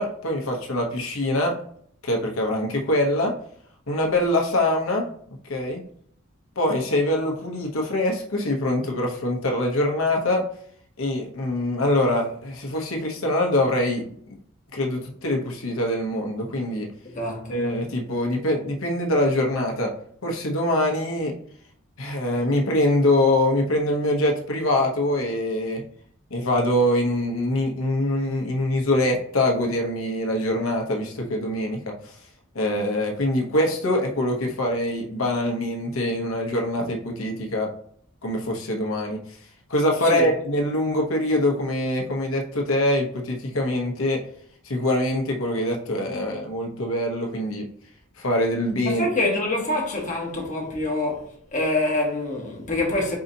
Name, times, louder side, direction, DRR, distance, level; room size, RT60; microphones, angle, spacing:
voice 1, 0.0-1.5 2.0-3.3 3.9-5.0 5.5-5.8 6.6-10.4 11.0-14.0 14.7-16.9 17.5-19.9 20.2-21.3 22.0-25.8 26.3-31.8 32.5-37.7 38.2-39.2 39.7-44.2 44.6-47.6 48.2-49.0, left 1 dB, 80° left, 0.9 m, -24 dB
voice 2, 17.1-17.7 40.0-40.3 48.8-53.2, left 2 dB, 35° left, 1.2 m, -26 dB
4.8 x 3.9 x 2.7 m
head